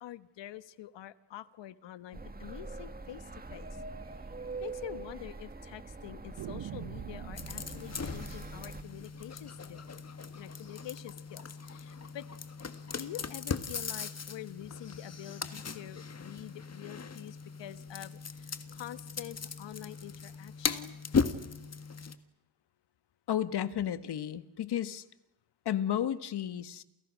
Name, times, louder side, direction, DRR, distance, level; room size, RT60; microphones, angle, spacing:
voice 1, 0.0-3.2 3.5-3.7 4.6-9.9 10.3-12.3 13.0-21.0, left 13 dB, 80° left, 14 dB, 1.3 m, -46 dB
sound 1, 2.1-8.8, right 3 dB, 20° right, 1.9 m, -44 dB
sound 2, 3.6-3.7 4.0-4.1 4.4-4.5 5.1-5.7 6.4-11.2, right 12 dB, 60° right, 0.9 m, -48 dB
sound 3, 7.3-22.2, left 5 dB, 35° left, 1.8 m, -38 dB
voice 2, 23.3-25.0 25.6-26.8, left 10 dB, 65° left, 13 dB, 1.5 m, -32 dB
29.5 x 29.0 x 6.4 m, 0.91 s
cardioid pair, 100°, 43 cm